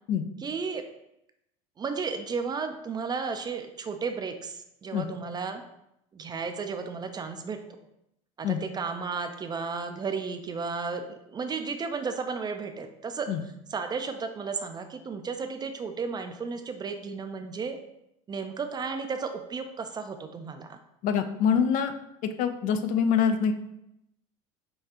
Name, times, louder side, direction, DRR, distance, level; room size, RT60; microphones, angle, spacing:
voice 1, 0.4-0.8 1.8-5.6 6.1-7.8 8.4-13.3 13.7-17.8 18.3-20.8, right 5 dB, 25° right, 7 dB, 0.4 m, -33 dB
voice 2, 21.0-21.9 22.4-23.5, left 7 dB, 50° left, 9 dB, 0.4 m, -24 dB
5.3 x 2.3 x 2.8 m, 0.82 s
hypercardioid pair, 80°, 18 cm